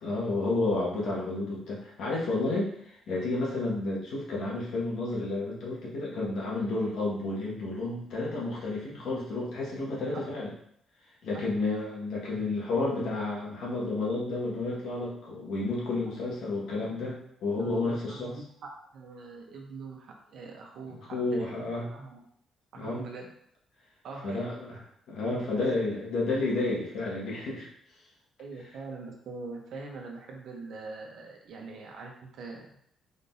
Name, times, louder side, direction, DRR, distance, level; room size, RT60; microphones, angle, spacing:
voice 1, 0.0-10.5 11.2-18.3 20.9-21.9 22.7-23.1 24.2-27.7, left 2 dB, 75° left, -5 dB, 1.6 m, -31 dB
voice 2, 16.1-16.5 17.6-22.2 22.7-23.3 24.0-24.4 25.3-25.7 28.4-32.7, right 3 dB, 75° right, 1 dB, 0.9 m, -43 dB
4.1 x 3.8 x 2.7 m, 0.69 s
cardioid pair, 75°, 0 cm